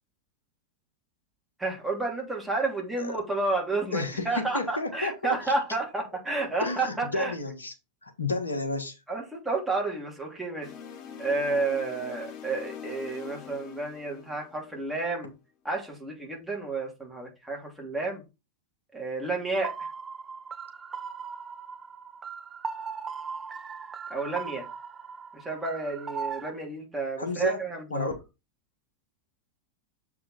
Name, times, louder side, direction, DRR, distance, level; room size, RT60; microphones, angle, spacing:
voice 1, 1.6-7.3 9.1-10.7 11.2-15.3 15.6-18.2 18.9-19.7 24.1-24.7 25.3-28.2, right 3 dB, 5° right, 2.9 m, -31 dB
voice 2, 3.9-5.5 6.6-7.7 8.0-9.0 27.2-27.6 27.9-28.1, left 2 dB, 75° left, 1.6 m, -31 dB
sound 1, 10.6-15.0, left 8 dB, 40° left, 1.3 m, -43 dB
sound 2, 19.6-26.5, right 6 dB, 20° right, 0.5 m, -38 dB
7.4 x 4.7 x 4.2 m
figure-of-eight pair, 90°, 0 cm